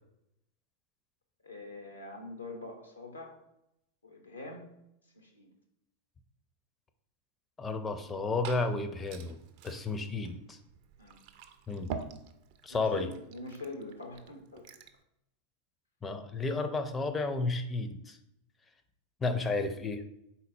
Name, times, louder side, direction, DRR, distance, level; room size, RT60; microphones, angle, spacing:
voice 1, 1.4-3.4 4.0-4.7 5.1-5.5 11.0-11.2 12.7-14.6, left 2 dB, 80° left, 2 dB, 0.7 m, -44 dB
voice 2, 7.6-9.4 9.6-10.6 11.7-11.9 12.6-13.1 16.0-18.2 19.2-20.0, left 3 dB, 15° left, 7 dB, 0.4 m, -32 dB
Liquid, 7.9-15.0, right 6 dB, 45° right, 0.4 m, -47 dB
4.3 x 3.9 x 2.7 m, 0.81 s
figure-of-eight pair, 90°, 0 cm